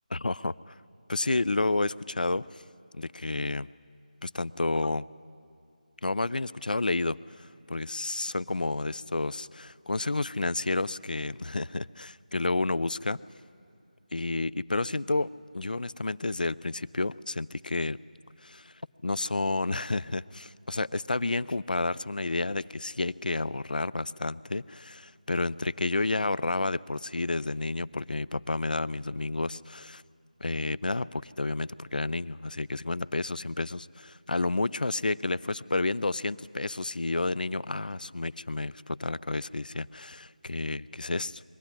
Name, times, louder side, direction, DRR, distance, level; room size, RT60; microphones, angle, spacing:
voice 1, 0.1-0.7 1.1-2.6 2.9-3.7 4.2-5.1 6.0-13.2 14.1-18.0 18.4-18.7 19.0-30.0 30.4-41.4, left 2 dB, 85° left, 20 dB, 0.4 m, -30 dB
21.5 x 14.5 x 10.0 m, 2.5 s
figure-of-eight pair, 165°, 4 cm